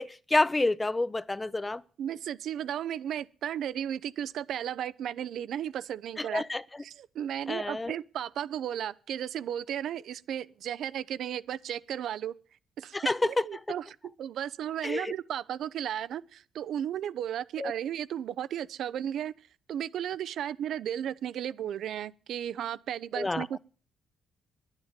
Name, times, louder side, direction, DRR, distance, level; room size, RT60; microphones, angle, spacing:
voice 1, 0.0-1.8 6.3-6.6 7.5-7.9 12.9-13.2 14.8-15.1 17.6-17.7 23.2-23.4, left 2 dB, 20° left, 0.5 m, -28 dB
voice 2, 2.0-6.4 6.8-12.4 12.8-19.3 19.7-23.6, right 10 dB, 70° right, 0.5 m, -34 dB
10.5 x 9.7 x 7.3 m
cardioid pair, 90°, 0 cm